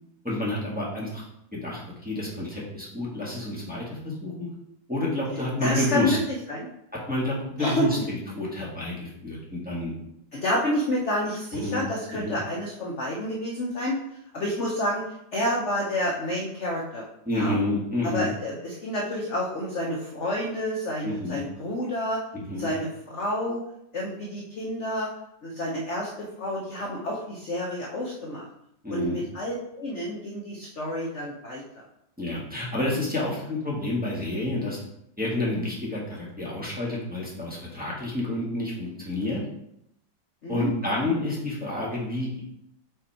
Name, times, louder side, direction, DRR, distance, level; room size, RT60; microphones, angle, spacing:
voice 1, 0.2-1.2 1.5-4.5 4.9-6.2 7.1-9.9 11.6-11.8 12.1-12.4 17.2-18.3 21.0-21.4 22.3-22.7 28.8-29.2 32.2-34.8 35.2-39.4 40.5-42.4, left 2 dB, 5° right, -6 dB, 1.5 m, -29 dB
voice 2, 5.6-6.2 6.5-6.7 7.6-7.8 10.3-13.9 14.3-15.0 15.3-17.1 17.3-17.6 18.0-22.2 22.6-23.6 23.9-25.1 25.4-26.1 26.4-28.4 28.9-31.6 40.4-40.7, left 1 dB, 50° left, -3 dB, 1.0 m, -29 dB
5.3 x 4.4 x 4.3 m, 0.78 s
omnidirectional pair, 2.1 m